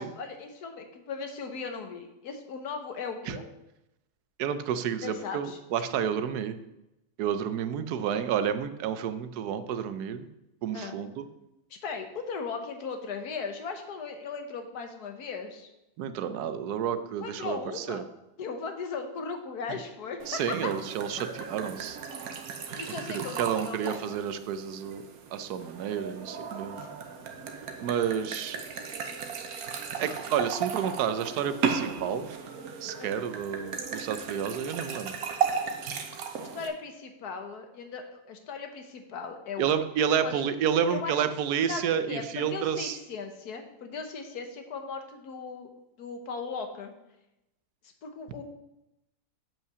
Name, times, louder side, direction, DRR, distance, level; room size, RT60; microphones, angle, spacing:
voice 1, 0.0-3.4 5.0-5.6 10.7-11.0 11.7-15.7 17.2-18.0 18.4-20.7 22.8-24.2 26.7-26.9 28.2-28.3 33.0-33.2 36.4-39.7 40.2-40.4 40.9-41.2 41.7-45.7 46.0-46.9 48.0-48.4, left 5 dB, 80° left, 6 dB, 1.6 m, -37 dB
voice 2, 4.4-6.6 7.2-10.3 10.6-11.2 16.0-18.0 20.3-22.0 23.1-25.0 25.3-26.8 27.8-28.6 30.0-32.3 32.8-35.1 39.6-43.0, right 8 dB, 90° right, 11 dB, 1.2 m, -30 dB
sound 1, 20.2-36.7, right 6 dB, 70° right, 1.4 m, -36 dB
7.4 x 5.5 x 6.7 m, 0.89 s
omnidirectional pair, 1.6 m